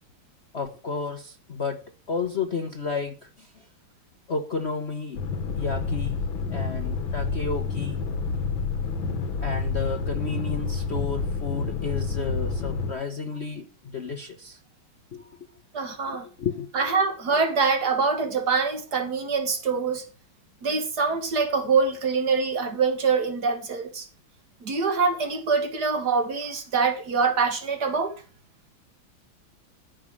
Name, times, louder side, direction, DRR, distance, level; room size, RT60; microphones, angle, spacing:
voice 1, 0.5-3.5 4.3-5.2 5.6-6.2 6.5-8.0 9.4-13.7 13.9-14.6 15.1-15.2 16.4-16.7, left 5 dB, 45° left, 0.9 m, -31 dB
sound 1, 5.1-12.9, left 4 dB, 90° left, 2.3 m, -29 dB
voice 2, 15.7-16.3 16.7-20.1 20.6-24.1 24.6-28.1, right 4 dB, 55° right, 2.2 m, -24 dB
14.0 x 5.3 x 7.2 m
omnidirectional pair, 2.2 m